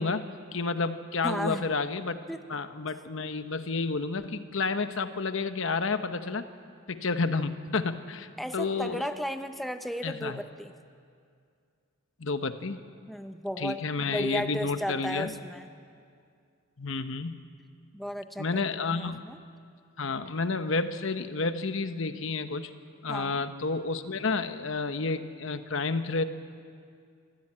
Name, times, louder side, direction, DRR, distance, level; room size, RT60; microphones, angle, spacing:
voice 1, 0.0-2.2 2.5-6.5 6.9-9.1 10.0-10.4 12.2-12.8 13.6-15.3 16.8-17.4 18.4-19.2 20.0-22.7 23.0-26.2, left 4 dB, 60° left, 10 dB, 1.0 m, -30 dB
voice 2, 1.2-1.6 2.3-2.4 8.4-10.7 13.1-13.8 14.1-15.7 17.9-18.6 18.9-19.4 23.1-23.4, equal, ahead, 7 dB, 0.6 m, -34 dB
25.0 x 15.0 x 8.8 m, 2.3 s
head